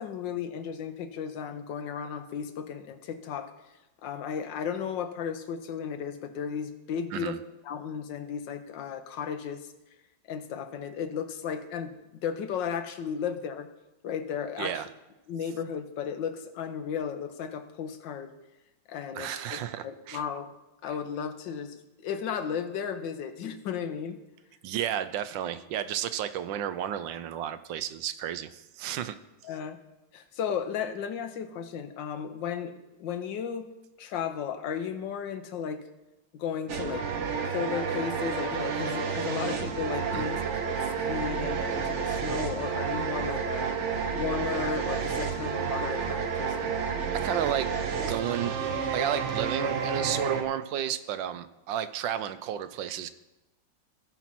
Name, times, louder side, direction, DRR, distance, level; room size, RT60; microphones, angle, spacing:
voice 1, 0.0-3.5 4.0-7.4 7.6-9.6 10.3-11.9 12.2-13.7 14.0-14.8 15.3-18.3 18.9-20.5 20.8-21.8 22.0-24.2 29.4-29.8 30.1-32.7 33.0-33.7 34.0-35.8 36.3-37.1 37.4-43.7 44.1-46.8, left 7 dB, 85° left, 8 dB, 1.5 m, -34 dB
voice 2, 7.1-7.4 14.6-14.9 19.1-20.2 24.6-29.1 40.1-40.3 47.1-47.7 48.1-48.5 48.9-53.1, right 10 dB, 90° right, 12 dB, 1.4 m, -32 dB
sound 1, 36.7-50.4, right 6 dB, 50° right, 1.0 m, -30 dB
16.0 x 6.0 x 4.2 m, 1.0 s
omnidirectional pair, 1.9 m